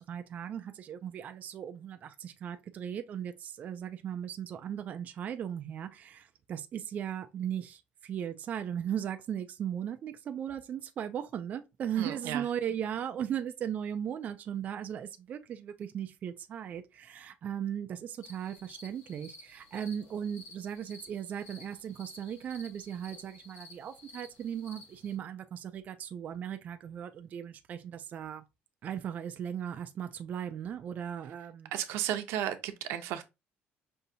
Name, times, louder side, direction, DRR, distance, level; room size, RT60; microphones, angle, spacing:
voice 1, 0.1-28.4 28.8-31.7, right 9 dB, 40° right, 0.4 m, -37 dB
voice 2, 12.0-12.5 31.7-33.2, right 11 dB, 90° right, 0.7 m, -34 dB
sound 1, 18.2-25.2, left 2 dB, 85° left, 1.2 m, -53 dB
5.5 x 2.7 x 2.6 m
cardioid pair, 155°, 4 cm